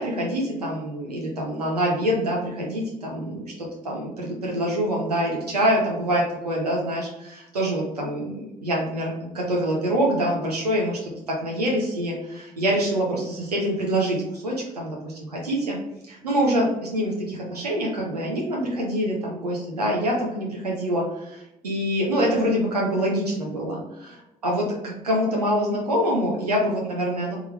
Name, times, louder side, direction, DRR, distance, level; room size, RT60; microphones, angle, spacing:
voice 1, 0.0-15.8 16.1-27.4, equal, 90° right, -3 dB, 0.9 m, -25 dB
3.6 x 3.3 x 3.2 m, 0.90 s
figure-of-eight pair, 45°, 20 cm